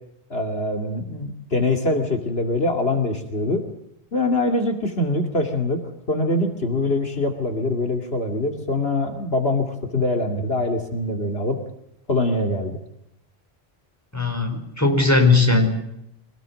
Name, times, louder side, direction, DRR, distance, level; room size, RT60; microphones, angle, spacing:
voice 1, 0.3-3.6 4.1-5.8 6.1-11.6 12.1-12.8, left 2 dB, 70° left, 4 dB, 2.9 m, -23 dB
voice 2, 14.1-15.7, left 3 dB, 15° left, 4 dB, 5.0 m, -18 dB
25.5 x 19.5 x 7.7 m, 0.81 s
omnidirectional pair, 1.1 m